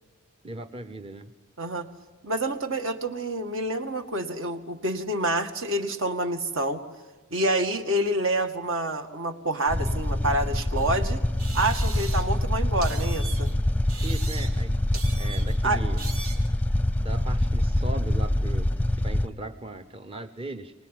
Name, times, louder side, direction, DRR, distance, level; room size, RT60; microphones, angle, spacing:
voice 1, 0.4-1.3 14.0-14.7 15.2-16.0 17.0-20.7, right 2 dB, 25° right, 7 dB, 0.9 m, -38 dB
voice 2, 2.2-6.8 7.3-11.2 11.5-13.5 15.6-15.8, right 1 dB, 65° right, 6 dB, 2.1 m, -27 dB
sound 1, 9.7-19.3, left 1 dB, 5° left, 0.7 m, -25 dB
sound 2, 10.8-10.9 11.4-12.4 12.8-13.5 13.9-14.7 14.9-15.6 16.0-16.5, right 4 dB, 90° right, 3.7 m, -40 dB
24.5 x 19.5 x 9.2 m, 1.2 s
head